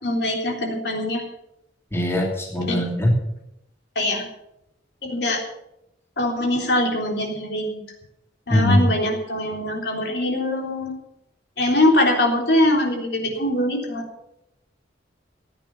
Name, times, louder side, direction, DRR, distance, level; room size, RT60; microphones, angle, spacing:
voice 1, 0.0-1.2 2.6-2.8 4.0-4.3 5.0-5.4 6.2-7.8 8.5-10.9 11.6-14.1, left 1 dB, 65° left, 1 dB, 3.6 m, -22 dB
voice 2, 1.9-3.1 8.5-8.9, left 1 dB, 15° left, -1 dB, 2.8 m, -20 dB
16.0 x 9.2 x 6.9 m, 0.82 s
head